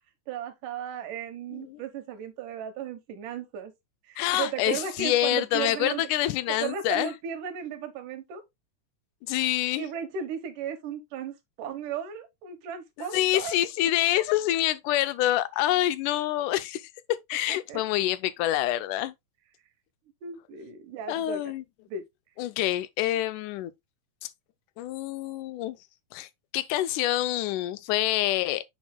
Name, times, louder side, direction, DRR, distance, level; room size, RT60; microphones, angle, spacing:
voice 1, 0.3-3.7 4.1-6.1 6.5-8.4 9.8-13.6 17.5-17.8 20.2-21.5 21.9-22.0, right 8 dB, 90° right, 2.7 m, -35 dB
voice 2, 4.2-7.1 9.3-9.9 13.0-16.9 17.3-19.1 21.1-21.6 22.4-23.7 24.8-25.8 26.1-26.3 26.5-28.6, left 14 dB, 85° left, 2.1 m, -26 dB
7.1 x 6.2 x 2.2 m
omnidirectional pair, 3.6 m